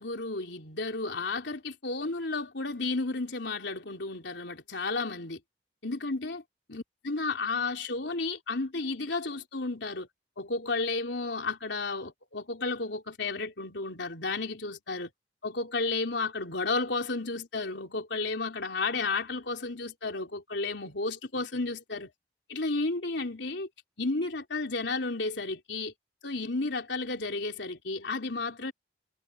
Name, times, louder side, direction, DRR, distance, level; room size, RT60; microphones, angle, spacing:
voice 1, 0.0-5.4 5.8-6.4 6.7-10.1 10.4-15.1 15.4-22.1 22.5-23.7 24.0-25.9 26.2-28.7, left 3 dB, 75° left, 3.6 m, -32 dB
head